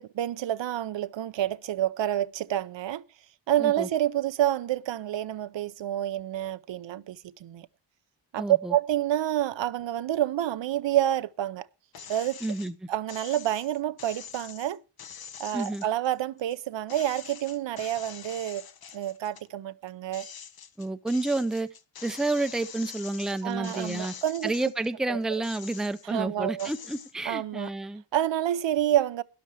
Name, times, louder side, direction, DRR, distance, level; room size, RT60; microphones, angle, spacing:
voice 1, 0.0-3.0 3.5-7.7 8.3-11.7 12.1-12.4 12.9-14.8 15.4-18.7 18.9-20.2 23.4-24.5 25.1-25.2 26.1-26.7 27.3-27.7 28.1-29.2, right 12 dB, 70° right, 0.7 m, -28 dB
voice 2, 8.4-8.7 12.4-12.7 15.5-15.8 20.8-21.7 22.0-24.1 24.4-28.0, right 2 dB, ahead, 0.6 m, -30 dB
sound 1, 11.9-12.7 13.1-16.6 16.9-19.5 19.9-24.9 25.3-26.2 26.6-27.1, left 8 dB, 55° left, 1.0 m, -45 dB
13.0 x 10.5 x 4.8 m
wide cardioid pair, 115°, 45 cm